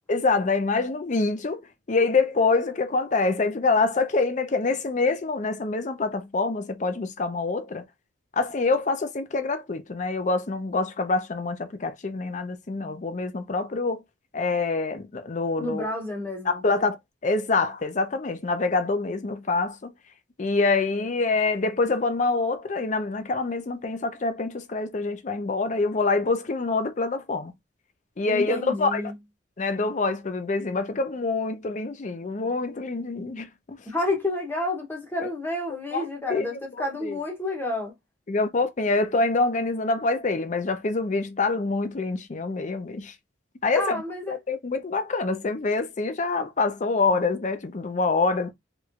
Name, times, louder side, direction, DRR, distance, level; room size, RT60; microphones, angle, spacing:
voice 1, 0.1-7.9 8.3-14.0 14.3-15.9 16.4-17.0 17.2-19.9 20.4-27.5 28.2-29.1 29.6-33.8 35.2-35.3 35.9-36.5 37.0-37.2 38.3-43.2 43.6-48.5, left 3 dB, 40° left, 0.5 m, -26 dB
voice 2, 15.6-16.6 28.2-29.1 33.9-37.9 43.7-44.4, left 2 dB, 10° left, 0.8 m, -30 dB
3.1 x 3.0 x 2.4 m
head